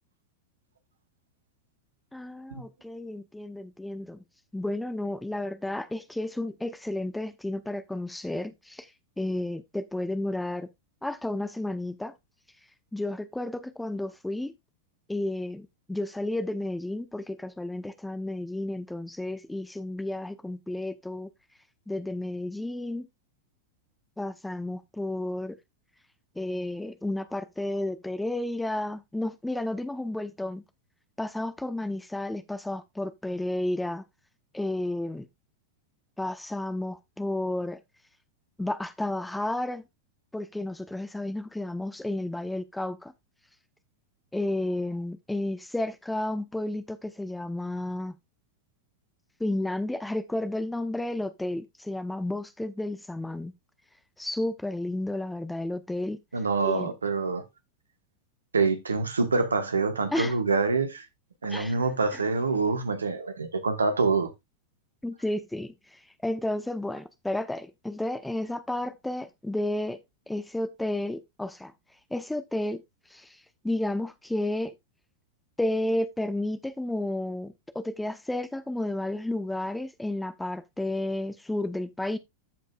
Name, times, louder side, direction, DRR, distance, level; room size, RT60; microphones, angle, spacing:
voice 1, 2.1-4.2 4.5-8.9 9.2-10.7 11.0-12.1 12.9-14.5 15.1-21.3 21.9-23.1 24.2-25.6 26.4-30.6 31.2-34.0 34.5-35.3 36.2-37.8 38.6-39.8 40.3-43.1 44.3-48.1 49.4-53.5 54.2-56.2 56.6-56.9 60.1-60.3 61.5-61.7 62.1-62.2 65.0-65.7 66.2-70.0 70.3-71.7 72.1-72.8 73.1-73.4 73.6-74.7 75.6-82.2, left 1 dB, 5° left, 0.9 m, -32 dB
voice 2, 56.3-57.4 58.5-61.0 61.4-64.3, right 4 dB, 75° right, 1.4 m, -26 dB
14.5 x 5.2 x 2.4 m
figure-of-eight pair, 90°, 0 cm